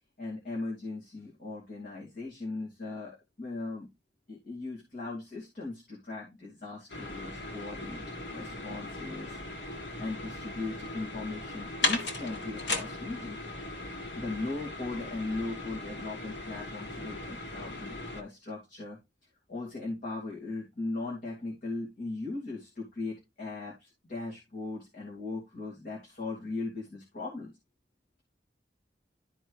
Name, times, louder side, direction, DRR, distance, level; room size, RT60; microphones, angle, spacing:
voice 1, 0.2-3.9 4.3-9.4 9.7-13.4 14.1-19.0 19.5-27.5, left 3 dB, 50° left, -4 dB, 2.5 m, -38 dB
sound 1, 6.9-18.2, left 2 dB, 85° left, 1.9 m, -37 dB
12.5 x 4.5 x 3.1 m, 0.23 s
head